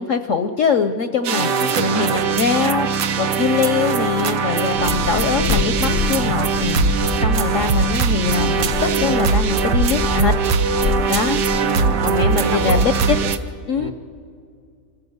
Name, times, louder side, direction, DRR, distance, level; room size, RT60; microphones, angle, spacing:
voice 1, 0.0-2.9 3.2-10.3 11.1-11.4 12.0-13.3 13.7-13.9, left 5 dB, 60° left, 8 dB, 0.9 m, -22 dB
sound 1, 1.2-13.4, right 5 dB, 75° right, 1.4 m, -20 dB
voice 2, 1.4-2.3 2.6-2.8 11.5-13.1 13.8-13.9, right 2 dB, 50° right, 6 dB, 1.5 m, -29 dB
Train, 4.8-11.6, left 7 dB, 80° left, 0.5 m, -26 dB
26.0 x 15.0 x 7.9 m, 2.3 s
omnidirectional pair, 1.9 m